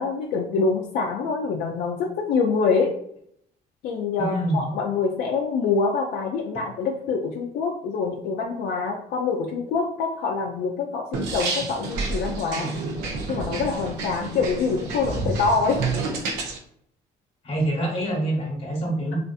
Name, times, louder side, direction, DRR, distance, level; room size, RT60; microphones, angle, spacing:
voice 1, 0.0-2.9 3.8-12.7 13.3-15.8, left 4 dB, 75° left, 1 dB, 0.4 m, -25 dB
voice 2, 4.2-4.6 6.5-6.6 17.4-19.2, right 1 dB, 35° left, -1 dB, 1.1 m, -26 dB
sound 1, 11.1-16.6, right 3 dB, 90° right, 0.5 m, -29 dB
2.5 x 2.5 x 2.4 m, 0.69 s
cardioid pair, 110°, 17 cm